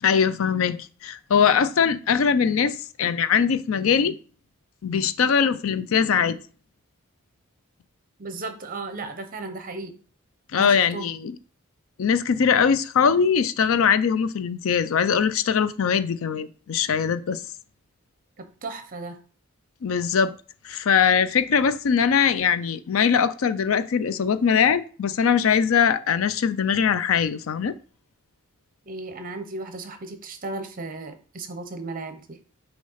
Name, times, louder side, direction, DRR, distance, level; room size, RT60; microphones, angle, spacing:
voice 1, 0.0-4.2 4.8-6.4 10.5-11.3 12.0-17.4 19.8-20.3 20.6-27.8, left 7 dB, 65° left, 0.4 m, -21 dB
voice 2, 8.2-10.0 10.6-11.1 18.4-19.2 28.9-32.4, right 3 dB, 40° right, 0.9 m, -35 dB
6.3 x 2.9 x 5.6 m
head